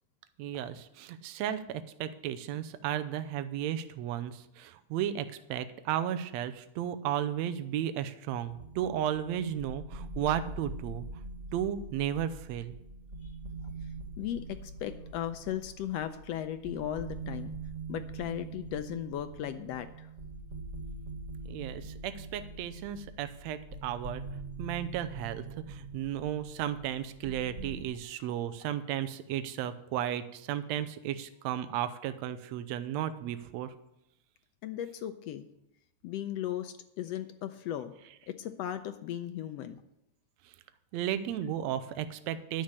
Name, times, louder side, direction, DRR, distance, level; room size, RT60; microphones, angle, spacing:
voice 1, 0.4-11.1 11.5-12.7 21.5-24.2 24.6-33.7 40.9-42.6, right 10 dB, 75° right, 11 dB, 1.9 m, -34 dB
sound 1, 8.4-27.8, right 3 dB, 35° right, 1.2 m, -43 dB
voice 2, 14.2-17.6 17.9-20.1 34.6-35.5 36.0-37.9 38.3-39.8, left 11 dB, 80° left, 10 dB, 1.5 m, -36 dB
11.5 x 6.5 x 8.2 m, 0.83 s
omnidirectional pair, 3.3 m